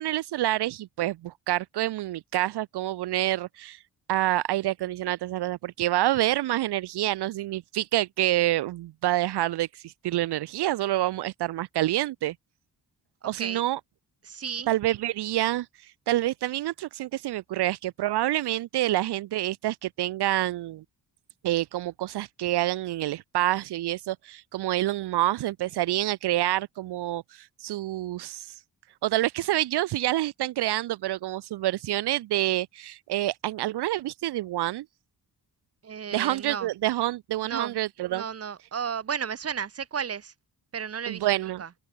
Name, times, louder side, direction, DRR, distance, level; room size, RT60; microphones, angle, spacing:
voice 1, 0.0-3.8 4.1-12.3 13.2-13.8 14.7-15.7 16.1-20.8 21.4-28.6 29.0-34.8 36.1-38.2 41.1-41.6, right 15 dB, 80° right, 0.5 m, -27 dB
voice 2, 13.2-13.6 14.2-14.7 35.8-36.7 37.4-37.8 38.1-40.3 40.7-41.7, right 7 dB, 40° right, 1.1 m, -33 dB
wide cardioid pair, 165°, 39 cm